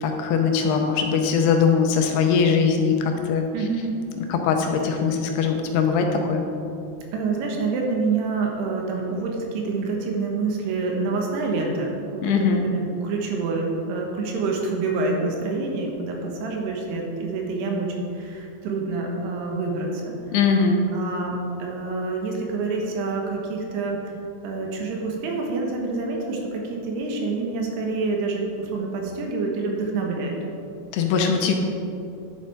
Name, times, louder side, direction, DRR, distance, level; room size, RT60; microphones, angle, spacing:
voice 1, 0.0-3.4 4.3-6.4 12.2-12.6 20.3-20.8 30.9-31.5, left 5 dB, 80° left, 3 dB, 2.7 m, -21 dB
voice 2, 3.5-4.0 7.1-20.4 20.9-24.0 24.4-30.3, right 3 dB, 75° right, 0 dB, 3.2 m, -27 dB
11.0 x 7.5 x 4.9 m, 2.7 s
omnidirectional pair, 5.0 m